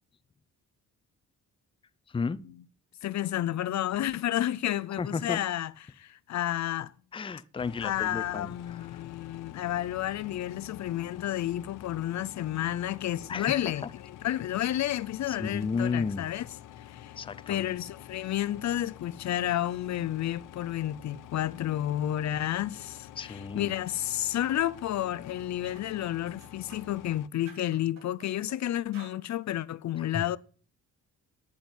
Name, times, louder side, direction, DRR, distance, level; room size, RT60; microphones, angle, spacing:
voice 1, 3.0-5.7 6.0-6.9 7.8-16.5 16.8-17.1 17.5-30.4, left 12 dB, 60° left, 0.6 m, -31 dB
voice 2, 5.0-5.4 7.1-9.0 13.3-13.9 15.3-16.3 17.2-17.7 23.2-23.7 30.0-30.3, left 5 dB, 15° left, 0.5 m, -33 dB
sound 1, 7.6-27.3, left 12 dB, 90° left, 0.8 m, -48 dB
sound 2, 24.4-24.6 25.0-25.1 25.6-25.9 26.3-27.2 27.5-28.6 28.9-29.2, right 4 dB, 55° right, 6.7 m, -53 dB
9.8 x 8.6 x 9.6 m
cardioid pair, 140°, 31 cm